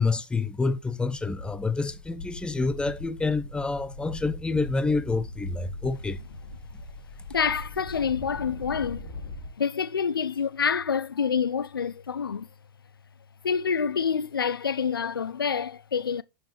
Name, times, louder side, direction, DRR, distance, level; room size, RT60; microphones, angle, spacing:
voice 1, 0.0-6.2, left 3 dB, 10° left, 0.9 m, -28 dB
sound 1, 0.6-0.7 1.0-9.5, left 2 dB, 70° left, 4.4 m, -40 dB
voice 2, 7.3-9.1 9.6-12.5 13.4-16.2, left 6 dB, 90° left, 0.6 m, -27 dB
11.0 x 7.2 x 3.4 m
hypercardioid pair, 105°, 11 cm